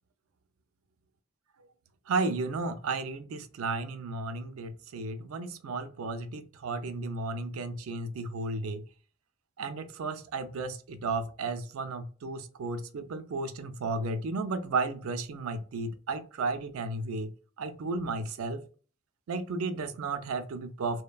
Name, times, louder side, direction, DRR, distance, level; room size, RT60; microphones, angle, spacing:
voice 1, 2.1-8.8 9.6-17.3 17.6-18.6 19.3-21.0, right 3 dB, 85° right, 10 dB, 0.4 m, -33 dB
3.0 x 2.1 x 2.2 m, 0.39 s
head